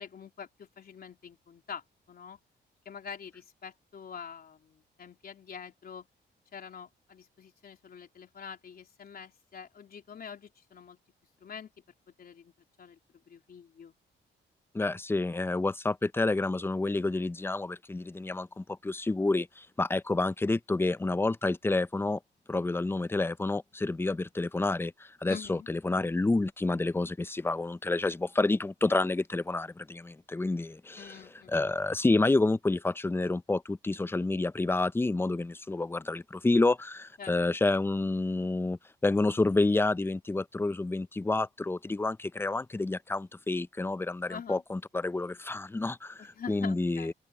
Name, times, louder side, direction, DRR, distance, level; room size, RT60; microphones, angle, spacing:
voice 1, 0.0-2.4 2.9-6.1 6.5-11.0 11.4-11.7 12.1-12.5 12.8-13.9 25.2-25.7 31.0-31.7 37.2-37.3 44.3-44.6 46.2-47.1, left 7 dB, 50° left, 3.5 m, -45 dB
voice 2, 14.7-22.2 22.5-31.2 31.5-38.8 39.0-46.2 46.5-47.1, left 2 dB, 10° left, 0.5 m, -29 dB
open air
cardioid pair, 100°, 19 cm